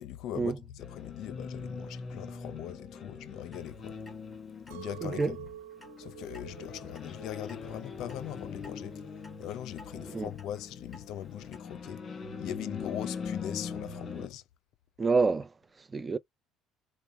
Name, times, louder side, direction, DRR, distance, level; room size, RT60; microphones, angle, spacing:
voice 1, 0.0-4.0 4.7-5.5 6.0-9.0 9.4-12.0 12.4-14.4, left 11 dB, 70° left, 0.5 m, -40 dB
sound 1, 0.8-14.3, left 5 dB, 40° left, 1.5 m, -42 dB
Clock, 3.5-11.6, left 2 dB, 15° left, 1.7 m, -57 dB
Chink clink, 4.7-9.9, right 11 dB, 85° right, 0.4 m, -48 dB
voice 2, 5.0-5.3 10.0-10.3 15.0-16.2, right 4 dB, 25° right, 0.6 m, -28 dB
5.6 x 2.2 x 3.0 m
supercardioid pair, 80°, 0 cm